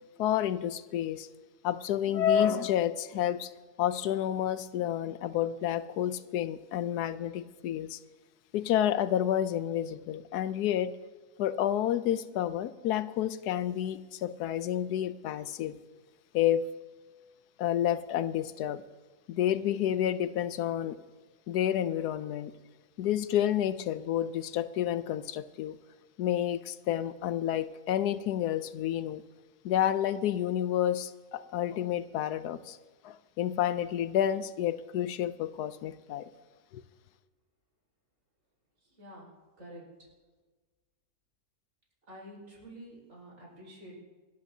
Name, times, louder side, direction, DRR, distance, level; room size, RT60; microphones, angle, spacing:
voice 1, 0.2-1.3 1.6-3.5 3.8-8.0 8.5-10.9 11.4-15.8 16.3-16.6 17.6-18.8 19.3-21.0 21.5-22.5 23.0-25.8 26.2-29.2 29.6-32.8 33.0-36.3 36.7-36.8, left 11 dB, 85° left, 1.1 m, -29 dB
voice 2, 39.0-39.3 39.6-39.8 42.1-43.9, right 1 dB, 55° right, 5.3 m, -48 dB
27.5 x 12.0 x 2.7 m
omnidirectional pair, 1.6 m